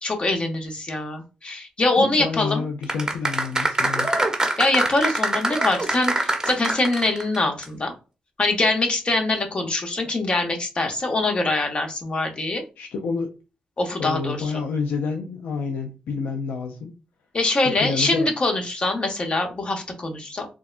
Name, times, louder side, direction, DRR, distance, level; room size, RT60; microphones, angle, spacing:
voice 1, 0.0-2.7 4.6-7.9 8.4-12.6 13.8-14.5 17.3-20.5, left 2 dB, 40° left, 4 dB, 0.8 m, -23 dB
voice 2, 2.0-4.2 12.8-13.3 14.0-16.9 17.5-18.3, left 5 dB, 90° left, 4 dB, 0.3 m, -29 dB
sound 1, 2.8-7.4 7.6-7.7, right 2 dB, 20° right, 0.8 m, -24 dB
3.4 x 2.1 x 2.4 m, 0.31 s
cardioid pair, 65°, 3 cm